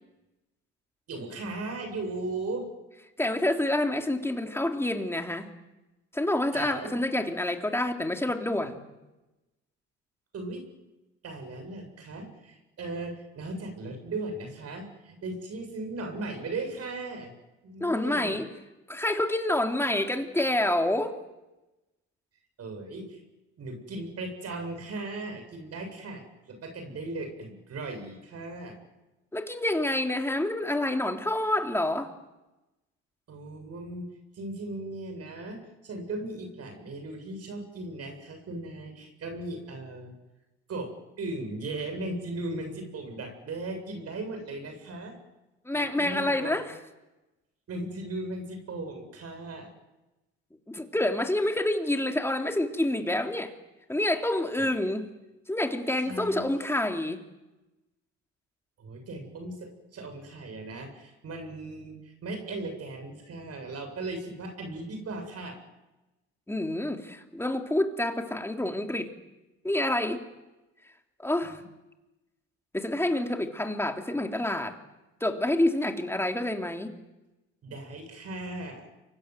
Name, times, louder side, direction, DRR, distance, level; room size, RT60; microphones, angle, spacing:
voice 1, 1.1-2.7 6.5-7.0 10.3-10.7 11.2-17.3 17.6-18.4 22.6-23.2 23.6-28.8 33.3-34.1 34.3-40.1 40.7-45.2 45.7-46.6 47.7-49.7 54.6-54.7 56.1-56.5 58.8-65.6 71.4-71.6 77.6-78.9, right 2 dB, 50° right, 5 dB, 7.6 m, -37 dB
voice 2, 3.2-5.5 6.1-8.8 17.8-18.5 18.9-21.2 29.3-32.1 45.6-46.7 50.7-53.5 53.9-55.1 55.5-57.2 66.5-69.1 69.6-70.2 71.2-71.6 72.7-74.8 75.2-77.0, left 1 dB, 10° left, 4 dB, 3.7 m, -28 dB
29.0 x 25.0 x 7.9 m, 1.0 s
supercardioid pair, 75°, 31 cm